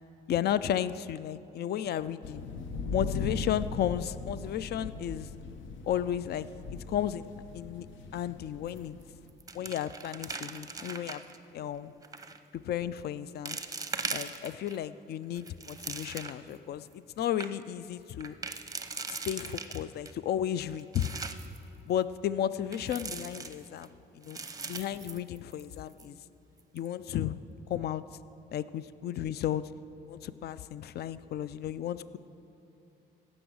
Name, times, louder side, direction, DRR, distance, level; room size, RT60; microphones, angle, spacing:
voice 1, 0.3-2.5 2.9-5.3 5.8-7.3 7.5-7.9 8.1-9.0 9.5-11.2 11.5-11.9 12.6-13.6 14.1-18.4 19.3-21.1 21.9-24.4 24.7-26.2 26.7-27.4 27.7-28.0 28.5-29.6 30.1-32.2, left 10 dB, 55° left, 16 dB, 0.4 m, -33 dB
sound 1, 2.2-9.3, left 4 dB, 75° left, 0.8 m, -39 dB
sound 2, 8.7-9.0 9.3-11.4 12.0-12.4 13.0-13.1 13.5-14.8 15.2-16.5 16.9-17.0 17.2-17.5 18.2-20.1 20.6-21.6 22.7-23.9 24.2-25.7 26.0-26.1 26.6-26.9, right 4 dB, 15° right, 0.7 m, -40 dB
16.5 x 6.2 x 6.2 m, 2.7 s
cardioid pair, 90°, 20 cm